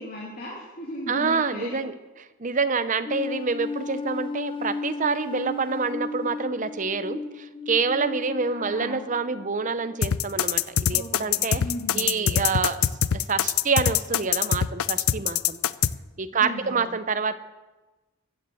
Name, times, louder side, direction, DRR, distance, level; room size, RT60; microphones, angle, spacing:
voice 1, 0.0-1.8 8.5-9.1 10.9-12.5 16.3-16.9, equal, 40° left, -5 dB, 2.9 m, -37 dB
voice 2, 1.1-11.6 11.9-15.6 16.2-17.4, right 5 dB, 35° right, 12 dB, 0.6 m, -27 dB
sound 1, 3.1-9.5, left 3 dB, 25° left, 0.7 m, -34 dB
sound 2, 10.0-15.9, left 10 dB, 70° left, 0.4 m, -22 dB
14.0 x 9.6 x 7.7 m, 1.2 s
head